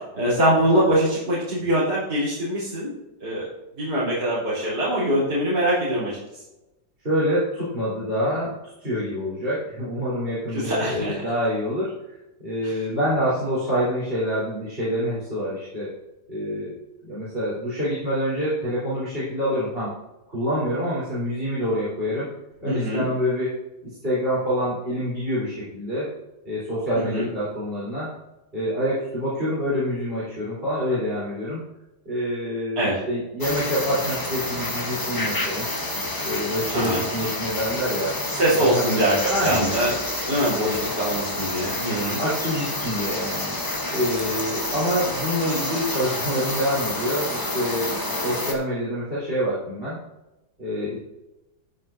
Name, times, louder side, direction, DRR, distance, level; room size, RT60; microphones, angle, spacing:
voice 1, 0.1-2.9 3.2-3.4 3.8-6.1 10.5-11.2 22.7-23.1 26.9-27.3 32.8-32.9 36.7-37.0 38.4-39.1 39.4-40.0 40.2-42.2, right 1 dB, 75° right, -12 dB, 4.2 m, -23 dB
voice 2, 7.0-15.9 16.3-16.8 17.0-19.9 20.3-22.3 22.6-26.1 26.4-28.1 28.5-31.6 32.0-35.7 36.2-38.2 38.5-39.0 39.3-39.8 40.5-40.9 42.2-43.6 43.9-50.0 50.6-51.0, equal, 30° right, -11 dB, 4.2 m, -26 dB
sound 1, 33.4-48.5, left 1 dB, 15° left, 1.1 m, -29 dB
14.0 x 7.6 x 2.7 m, 0.99 s
omnidirectional pair, 1.8 m